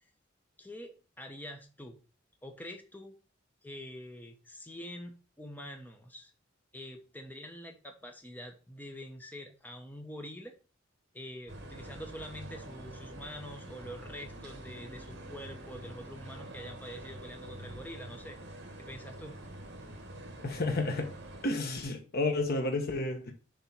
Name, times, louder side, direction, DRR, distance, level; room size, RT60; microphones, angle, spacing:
voice 1, 0.6-2.0 2.4-3.1 3.6-6.3 6.7-10.5 11.1-19.4, equal, 10° left, 0.9 m, -46 dB
sound 1, 11.5-21.5, right 1 dB, 60° right, 1.7 m, -46 dB
voice 2, 20.4-21.2 21.4-23.3, left 2 dB, 50° left, 1.0 m, -31 dB
7.0 x 3.7 x 5.8 m
head